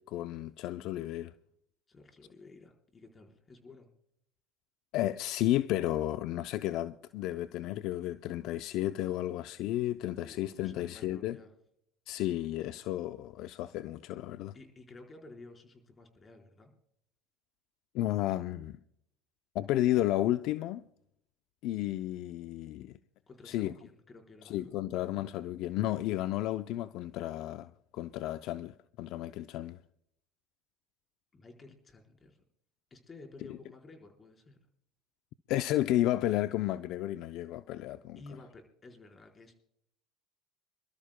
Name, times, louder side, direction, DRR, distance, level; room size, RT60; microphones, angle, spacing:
voice 1, 0.0-1.3 4.9-11.4 12.1-14.5 17.9-18.8 19.5-20.8 21.6-23.0 23.5-23.7 24.5-29.8 35.5-38.2, left 14 dB, 65° left, 0.5 m, -32 dB
voice 2, 1.9-3.9 10.2-11.5 14.5-16.7 23.3-24.7 31.3-32.4 32.9-34.6 38.2-39.6, left 3 dB, 25° left, 4.4 m, -53 dB
27.5 x 13.0 x 2.2 m
supercardioid pair, 90°, 0 cm